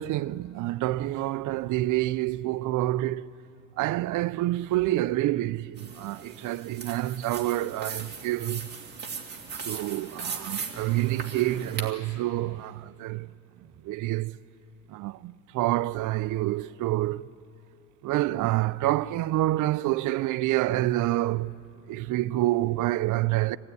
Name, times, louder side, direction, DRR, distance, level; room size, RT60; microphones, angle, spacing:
voice 1, 0.0-3.3 3.8-8.7 9.6-13.3 13.8-14.4 14.9-17.3 18.0-21.6 21.9-23.6, right 16 dB, 60° right, 0.5 m, -27 dB
sound 1, 5.8-11.9, right 5 dB, 30° right, 2.5 m, -38 dB
26.0 x 17.5 x 9.6 m
cardioid pair, 135°, 35 cm